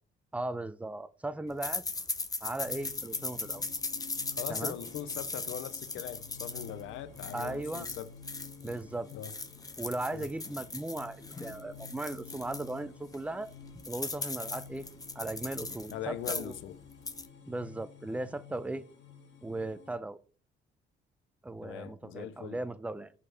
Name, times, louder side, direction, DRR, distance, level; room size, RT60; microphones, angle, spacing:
voice 1, 0.3-1.8 2.4-3.6 4.5-4.8 7.3-7.9 8.6-9.1 9.8-13.5 13.9-14.9 15.2-16.5 17.5-18.8 19.4-20.2 21.4-23.1, right 2 dB, 5° right, 0.4 m, -37 dB
sound 1, 1.6-8.8 9.1-12.7 13.1-13.2 13.5-15.9 16.2-16.6 16.9-17.3, left 3 dB, 20° left, 0.7 m, -38 dB
sound 2, 2.6-20.0, left 5 dB, 65° left, 1.6 m, -51 dB
voice 2, 4.3-8.1 9.1-9.3 10.1-10.3 15.9-16.8 21.6-22.6, left 11 dB, 85° left, 0.6 m, -41 dB
5.2 x 4.2 x 4.3 m
cardioid pair, 90°, 20 cm